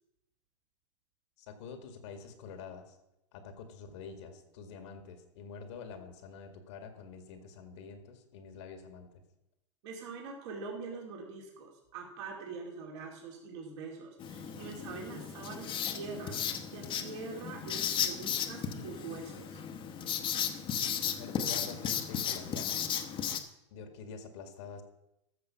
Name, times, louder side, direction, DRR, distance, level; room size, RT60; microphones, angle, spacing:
voice 1, 1.4-3.0 3.3-9.2 21.0-22.8 23.7-24.8, left 5 dB, 65° left, 7 dB, 2.0 m, -46 dB
voice 2, 9.8-16.3 16.7-19.6, right 4 dB, 60° right, 0 dB, 2.7 m, -44 dB
Writing, 14.2-23.4, left 8 dB, 30° left, 1.1 m, -35 dB
14.0 x 6.2 x 5.9 m, 0.86 s
hypercardioid pair, 110°, 16 cm